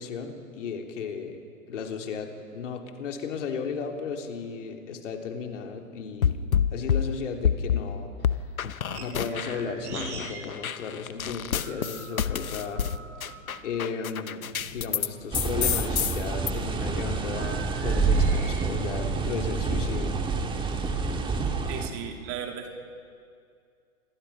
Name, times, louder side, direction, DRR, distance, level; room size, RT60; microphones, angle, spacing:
voice 1, 0.0-1.4 1.7-6.4 6.7-8.1 9.0-12.9 13.6-14.4 14.7-20.1, left 5 dB, 60° left, 3 dB, 3.3 m, -35 dB
sound 1, 6.2-7.9 8.2-9.6 9.9-15.1 15.3-16.5, left 8 dB, 80° left, 0.9 m, -28 dB
sound 2, 8.2-10.5 10.8-13.9 14.4-18.6, right 4 dB, 55° right, 6.8 m, -44 dB
sound 3, 15.3-21.9, right 4 dB, 10° right, 1.8 m, -27 dB
voice 2, 21.7-22.7, right 8 dB, 35° right, 3 dB, 2.8 m, -36 dB
26.5 x 22.0 x 5.8 m, 2.4 s
figure-of-eight pair, 115°, 41 cm